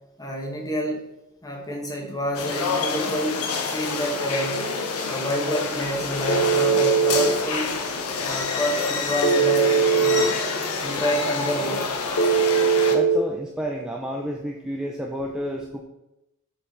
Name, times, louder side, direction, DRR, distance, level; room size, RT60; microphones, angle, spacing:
voice 1, 0.2-1.0 1.4-3.4 3.7-4.6 5.1-7.7 8.2-10.4 10.8-11.9, equal, 15° left, 0 dB, 1.4 m, -28 dB
sound 1, 2.3-12.9, left 4 dB, 90° left, 1.1 m, -27 dB
Telephone, 6.3-7.3 9.2-10.2 12.2-13.2, right 6 dB, 65° left, 0.6 m, -20 dB
voice 2, 12.9-15.8, equal, 5° right, 0 dB, 0.5 m, -30 dB
7.1 x 5.1 x 5.1 m, 0.93 s
head